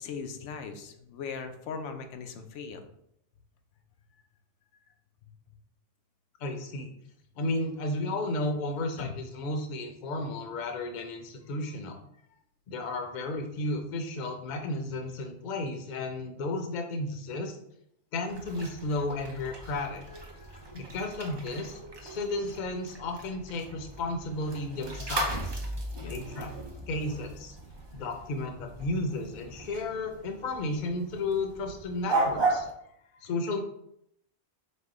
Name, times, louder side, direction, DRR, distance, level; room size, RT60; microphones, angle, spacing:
voice 1, 0.0-2.9 9.0-9.1 19.4-19.6 20.1-20.7 26.0-26.2 32.8-33.2, left 5 dB, 90° left, 6 dB, 0.9 m, -40 dB
voice 2, 6.4-6.9 7.4-12.0 12.7-17.6 18.1-20.0 20.7-25.6 26.1-26.5 26.9-27.6 27.9-32.7 33.2-33.6, left 2 dB, 50° left, 4 dB, 0.7 m, -33 dB
sound 1, 18.3-32.7, right 2 dB, 30° right, 0.5 m, -36 dB
5.3 x 2.1 x 3.7 m, 0.74 s
omnidirectional pair, 1.2 m